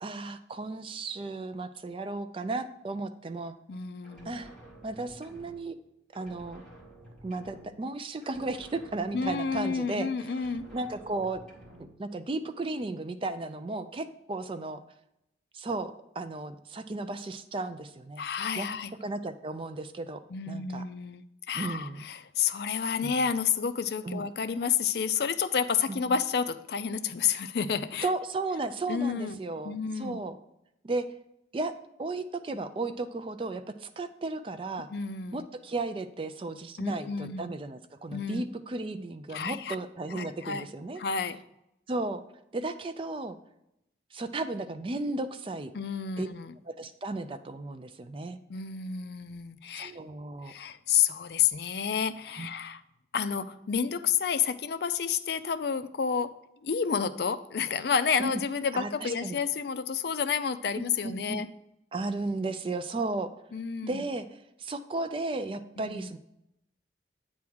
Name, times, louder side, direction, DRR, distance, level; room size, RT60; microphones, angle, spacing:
voice 1, 0.0-3.6 4.3-4.5 4.8-5.7 6.1-6.6 7.2-10.1 10.7-11.4 11.8-14.8 15.5-18.2 18.6-18.7 19.0-20.2 20.5-20.8 21.5-22.1 23.0-23.1 24.0-24.3 25.9-26.2 28.0-30.4 30.8-31.1 31.5-31.7 32.0-34.9 35.3-41.0 41.9-42.2 42.5-43.4 44.1-45.7 46.2-46.3 46.7-48.4 49.8-50.5 52.4-52.5 58.2-58.3 58.7-59.4 60.8-61.4 61.9-63.3 63.8-66.2, right 2 dB, 30° right, 10 dB, 0.3 m, -34 dB
voice 2, 3.7-4.4 9.1-10.7 18.2-18.9 20.3-28.1 28.9-29.4 29.6-30.2 34.9-35.5 36.8-37.5 38.1-38.4 39.3-39.8 40.1-40.7 41.0-41.4 45.7-46.5 48.5-49.9 50.5-52.8 53.1-61.5 63.5-64.0 65.8-66.1, left 6 dB, 60° left, 12 dB, 0.4 m, -30 dB
sound 1, 4.0-5.9 6.1-8.0 8.2-10.0 10.3-12.0, right 1 dB, 5° left, 1.9 m, -52 dB
8.6 x 3.6 x 6.1 m, 0.83 s
head